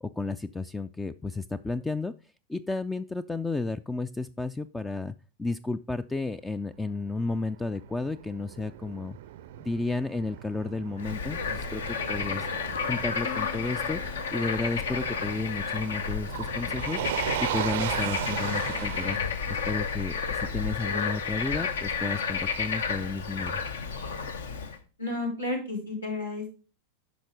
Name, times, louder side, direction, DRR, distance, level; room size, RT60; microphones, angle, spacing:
voice 1, 0.0-2.1 2.5-5.1 5.4-9.2 9.6-12.5 12.9-17.0 17.4-19.2 19.5-23.6, left 3 dB, 10° left, 14 dB, 0.3 m, -32 dB
Motor vehicle (road), 6.7-21.8, right 13 dB, 55° right, 0.5 m, -38 dB
Bird / Frog, 11.0-24.8, left 6 dB, 65° left, 0.9 m, -31 dB
Plucked string instrument, 13.2-16.0, left 9 dB, 40° left, 1.7 m, -46 dB
voice 2, 25.0-26.5, left 2 dB, 80° left, -2 dB, 4.3 m, -32 dB
10.0 x 5.8 x 5.0 m, 0.34 s
figure-of-eight pair, 90°, 0 cm